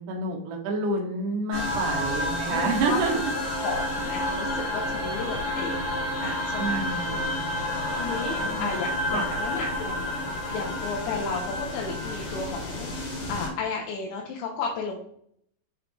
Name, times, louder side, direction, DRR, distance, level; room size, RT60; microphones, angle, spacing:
voice 1, 0.0-3.2 6.6-7.8 8.4-8.7 9.1-9.3, right 3 dB, 65° right, 1 dB, 2.3 m, -29 dB
sound 1, 1.5-13.5, left 1 dB, 50° left, 3.1 m, -30 dB
voice 2, 2.5-3.0 3.6-5.8 6.2-6.8 7.1-7.2 8.0-10.1 10.5-15.0, left 4 dB, 80° left, -2 dB, 3.1 m, -33 dB
7.3 x 5.0 x 3.0 m, 0.67 s
omnidirectional pair, 5.1 m